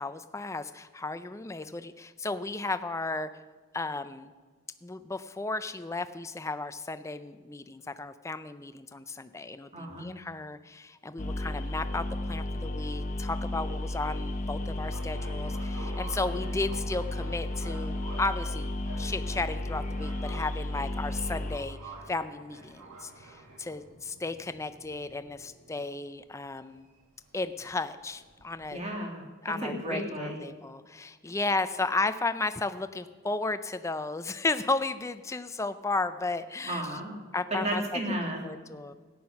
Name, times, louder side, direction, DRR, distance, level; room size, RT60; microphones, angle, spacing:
voice 1, 0.0-3.3 3.7-4.3 4.8-18.7 19.0-26.9 27.3-28.8 29.4-37.0 37.3-37.8 38.4-38.9, left 3 dB, 15° left, 11 dB, 0.4 m, -34 dB
voice 2, 9.7-10.1 28.7-29.2 29.6-30.4 36.7-37.1 37.5-38.4, right 1 dB, 30° right, 0 dB, 2.2 m, -33 dB
sound 1, 11.2-21.6, left 1 dB, 35° left, 0.8 m, -33 dB
sound 2, 14.9-28.7, right 2 dB, 85° right, 2.0 m, -49 dB
13.5 x 9.6 x 5.8 m, 1.4 s
head